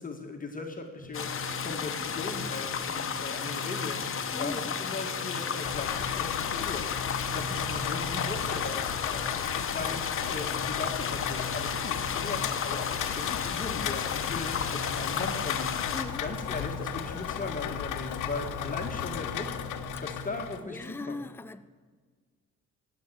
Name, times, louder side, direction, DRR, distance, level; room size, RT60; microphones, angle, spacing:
voice 1, 0.0-19.6 20.0-21.2, left 3 dB, 25° left, 2 dB, 1.9 m, -39 dB
sound 1, 1.0-20.3, equal, 55° right, 3.8 m, -43 dB
sound 2, 1.1-16.0, left 7 dB, 45° left, 1.2 m, -33 dB
voice 2, 4.3-4.7 15.9-16.2 20.1-20.2 20.6-21.7, left 3 dB, 5° left, 10 dB, 0.6 m, -39 dB
Rain, 5.6-20.6, left 10 dB, 80° left, 1.0 m, -35 dB
18.5 x 7.4 x 8.1 m, 1.5 s
cardioid pair, 90°, 30 cm